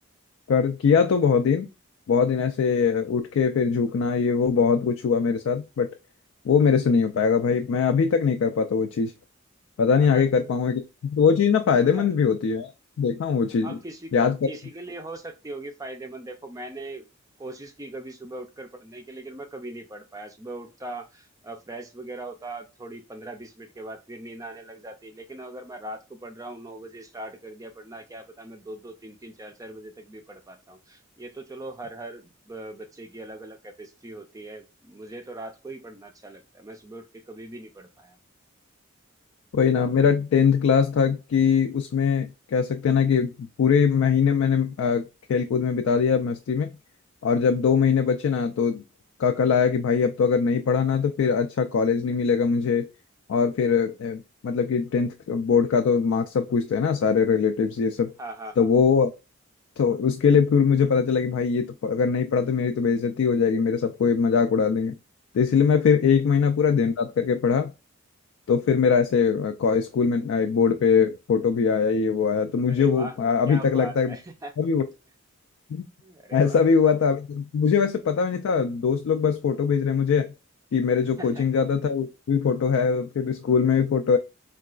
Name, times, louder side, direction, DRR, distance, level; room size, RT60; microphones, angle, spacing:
voice 1, 0.5-1.7 2.1-5.9 6.5-9.1 9.8-12.7 13.0-13.8 14.1-14.5 39.5-43.3 43.6-46.7 47.2-48.8 49.2-52.9 53.3-58.1 58.6-59.1 59.8-64.9 65.3-67.7 68.5-74.1 74.6-74.9 75.7-75.8 76.3-80.3 80.7-84.2, left 6 dB, 70° left, 0.3 m, -22 dB
voice 2, 9.9-10.2 11.8-12.1 13.6-17.0 17.4-38.2 58.2-58.8 72.7-74.5 76.0-76.6 81.2-81.5, right 2 dB, 15° right, 0.3 m, -40 dB
3.8 x 2.3 x 2.3 m
head